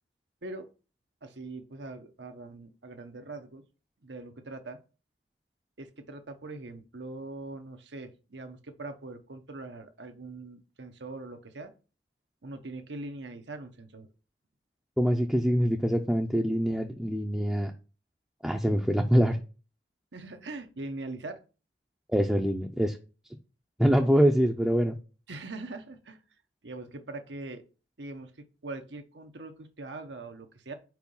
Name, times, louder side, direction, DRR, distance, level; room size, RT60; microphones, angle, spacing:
voice 1, 1.2-3.6 4.0-4.8 5.8-11.7 12.4-14.1 20.1-21.4 25.3-26.2 26.6-27.6 28.0-28.3 28.6-30.7, right 2 dB, 85° right, 1.0 m, -42 dB
voice 2, 15.0-17.7 18.4-19.4 22.1-23.0 23.8-25.0, equal, 5° right, 0.5 m, -24 dB
4.8 x 4.7 x 5.3 m
head